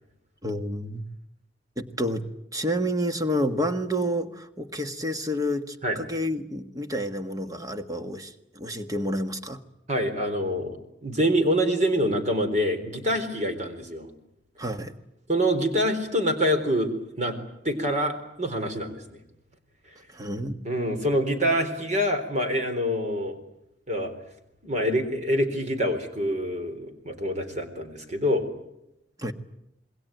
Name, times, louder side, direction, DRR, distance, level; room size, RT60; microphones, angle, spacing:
voice 1, 0.4-1.1 1.8-9.6 14.6-14.9 20.1-20.6 29.2-29.3, equal, 20° right, 7 dB, 1.5 m, -29 dB
voice 2, 9.9-10.8 11.0-14.1 15.3-17.4 17.6-19.2 20.6-23.4 23.9-24.1 24.6-28.4, equal, 40° right, 6 dB, 4.0 m, -26 dB
27.0 x 21.5 x 9.2 m, 0.84 s
head